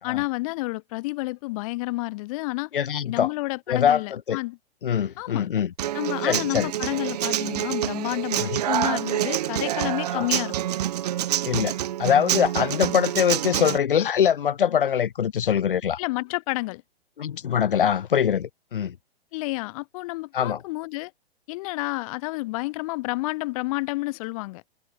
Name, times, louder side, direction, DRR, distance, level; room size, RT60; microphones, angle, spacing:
voice 1, 0.0-2.7 3.0-4.6 5.2-5.5 5.9-10.6 16.0-16.8 19.3-21.1 21.5-24.6, left 22 dB, 35° left, 2.4 m, -30 dB
voice 2, 2.7-3.3 3.7-4.4 4.8-5.7 6.2-6.7 8.4-8.6 10.1-10.3 11.5-16.0 17.2-19.0 20.3-20.6, left 8 dB, 55° left, 1.3 m, -23 dB
Human voice / Acoustic guitar, 5.8-13.8, right 12 dB, 40° right, 0.6 m, -27 dB
figure-of-eight pair, 115°, 32 cm